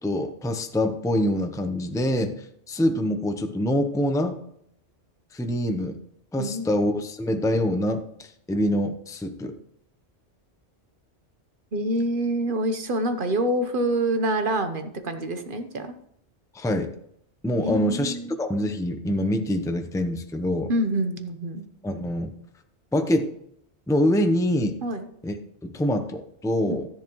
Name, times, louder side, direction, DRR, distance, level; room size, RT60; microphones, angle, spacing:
voice 1, 0.0-4.4 5.3-6.0 6.3-9.5 16.5-16.9 17.4-20.7 21.8-22.3 22.9-23.3 23.9-24.8 25.2-25.3 25.6-26.9, left 1 dB, 5° left, 7 dB, 0.6 m, -25 dB
voice 2, 6.4-6.7 11.7-15.9 17.6-18.3 20.7-21.6 24.8-25.1 26.7-26.8, right 1 dB, 50° right, 8 dB, 1.1 m, -26 dB
13.0 x 10.5 x 3.1 m, 0.71 s
omnidirectional pair, 1.1 m